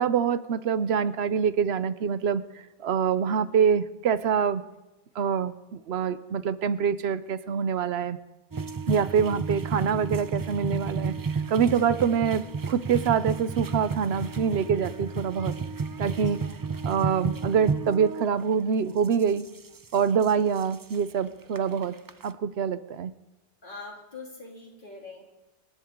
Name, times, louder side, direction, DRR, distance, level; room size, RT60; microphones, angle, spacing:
voice 1, 0.0-2.4 2.8-4.6 5.2-8.2 8.9-11.1 11.5-15.5 16.0-16.4 16.8-19.4 19.9-22.0 22.2-23.1, right 7 dB, 90° right, 14 dB, 1.0 m, -25 dB
sound 1, 8.5-18.3 19.0-21.0 21.6-21.7 21.8-22.2, right 5 dB, 35° right, 0.3 m, -32 dB
voice 2, 23.6-25.2, left 3 dB, 55° left, -1 dB, 3.1 m, -43 dB
26.0 x 11.0 x 3.7 m, 1.0 s
omnidirectional pair, 1.0 m